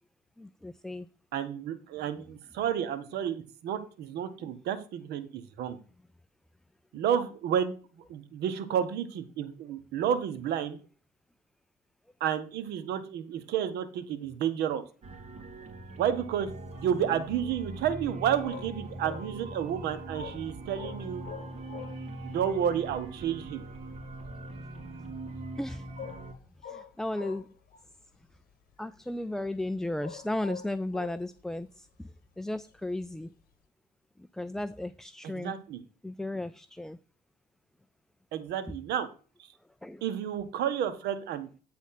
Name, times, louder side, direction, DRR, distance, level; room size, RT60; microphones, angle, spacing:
voice 1, 0.4-1.1 25.6-25.9 26.6-27.5 28.8-33.3 34.3-35.6 36.0-37.0 39.8-40.0, left 1 dB, 5° left, 0.3 m, -35 dB
voice 2, 1.3-5.8 6.9-7.7 8.1-10.8 12.2-14.8 16.0-16.5 16.8-21.3 22.2-23.6 35.2-35.8 38.3-39.1 40.0-41.5, right 9 dB, 80° right, 1.2 m, -31 dB
sound 1, 15.0-26.3, right 2 dB, 40° right, 2.5 m, -42 dB
sound 2, 18.4-22.3 22.5-22.6 22.8-23.8 24.1-24.9 25.4-25.6 26.0-27.9 28.3-29.1 29.4-31.4 32.8-33.4, left 7 dB, 60° left, 1.2 m, -45 dB
9.6 x 4.2 x 5.7 m
cardioid pair, 110°, 17 cm